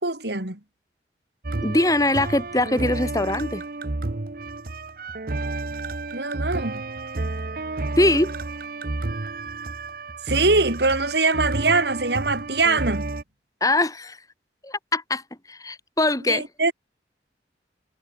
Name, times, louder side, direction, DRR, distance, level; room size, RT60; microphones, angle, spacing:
voice 1, 0.0-0.6 6.1-6.8 10.3-13.1 16.3-16.7, right 3 dB, 70° right, 3.7 m, -22 dB
sound 1, 1.4-13.2, right 2 dB, 55° right, 0.9 m, -31 dB
voice 2, 1.6-3.6 8.0-8.3 13.6-14.2 14.6-15.2 15.5-16.4, left 2 dB, 20° left, 2.4 m, -22 dB
head